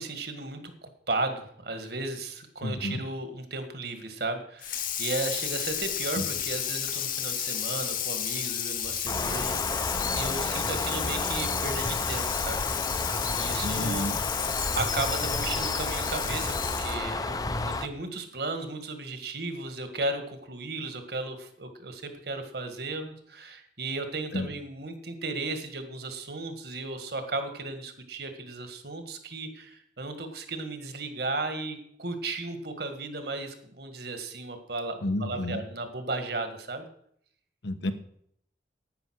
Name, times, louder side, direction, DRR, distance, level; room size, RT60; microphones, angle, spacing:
voice 1, 0.0-9.6 10.1-12.6 13.3-14.1 14.8-17.4 17.6-36.9, right 3 dB, 60° right, 7 dB, 1.8 m, -35 dB
voice 2, 2.6-3.0 6.2-6.3 13.6-14.2 24.3-24.5 35.0-35.6 37.6-37.9, left 1 dB, 75° left, 10 dB, 1.1 m, -30 dB
Water tap faucet / Sink (filling or washing), 4.6-17.1, left 10 dB, 50° left, 1.3 m, -32 dB
Bird, 9.1-17.9, left 3 dB, 20° left, 0.6 m, -31 dB
10.5 x 9.5 x 6.4 m, 0.67 s
head